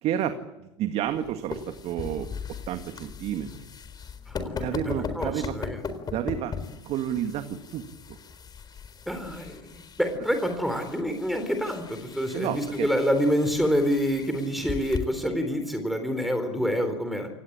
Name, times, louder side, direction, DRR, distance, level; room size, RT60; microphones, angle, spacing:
voice 1, 0.0-2.3 2.7-3.5 4.6-5.6 6.1-6.5 6.9-7.8 8.1-8.2 12.3-12.9, right 10 dB, 45° right, 8 dB, 2.0 m, -30 dB
sound 1, 1.0-15.0, left 5 dB, 30° left, 4.2 m, -39 dB
voice 2, 4.3-5.8 9.1-17.3, equal, ahead, 5 dB, 4.0 m, -27 dB
28.0 x 18.5 x 8.9 m, 0.95 s
hypercardioid pair, 80°, 14 cm